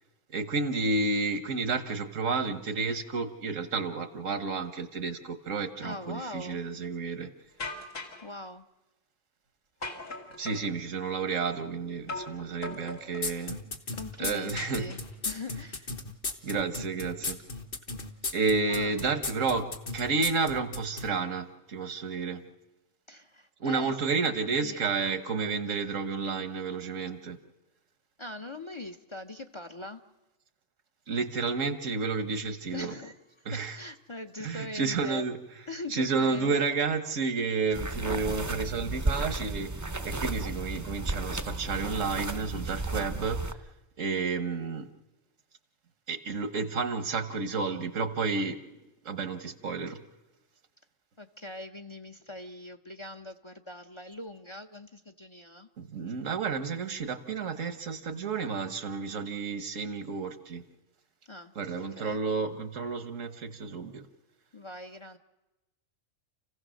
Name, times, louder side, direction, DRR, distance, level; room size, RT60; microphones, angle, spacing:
voice 1, 0.3-7.3 10.4-13.6 14.2-14.9 16.4-17.4 18.3-22.4 23.6-27.4 31.1-32.9 33.4-33.8 34.4-35.4 35.9-39.7 40.0-43.4 44.0-44.9 46.1-48.6 49.0-50.0 55.8-60.6 61.5-64.1, right 4 dB, 85° right, 10 dB, 1.6 m, -31 dB
voice 2, 5.8-6.6 8.2-8.6 13.9-15.9 18.7-19.0 23.1-24.0 24.6-24.8 28.2-30.0 32.7-33.2 33.5-35.2 35.7-36.7 51.2-55.7 61.3-62.2 64.5-65.2, left 2 dB, 30° left, 8 dB, 0.7 m, -41 dB
sound 1, 7.6-8.3 9.8-10.7 12.1-12.4 12.6-13.3 14.6-15.3, left 3 dB, 85° left, 2.8 m, -39 dB
sound 2, 13.2-21.1, left 3 dB, 45° left, 1.5 m, -35 dB
sound 3, 37.7-43.5, right 2 dB, 20° right, 0.6 m, -33 dB
29.5 x 16.0 x 6.4 m, 1.1 s
omnidirectional pair, 1.3 m